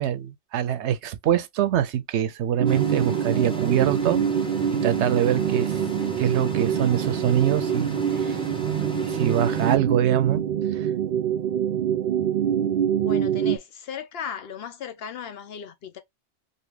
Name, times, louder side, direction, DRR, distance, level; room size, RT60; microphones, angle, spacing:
voice 1, 0.0-4.2 4.8-5.8 6.2-8.4 9.1-10.4, right 10 dB, 90° right, 0.9 m, -24 dB
sound 1, 2.6-13.6, right 9 dB, 65° right, 0.7 m, -25 dB
sound 2, 2.7-9.8, equal, 5° left, 0.7 m, -35 dB
voice 2, 13.0-16.0, left 7 dB, 65° left, 0.9 m, -36 dB
2.7 x 2.7 x 3.2 m
omnidirectional pair, 1.1 m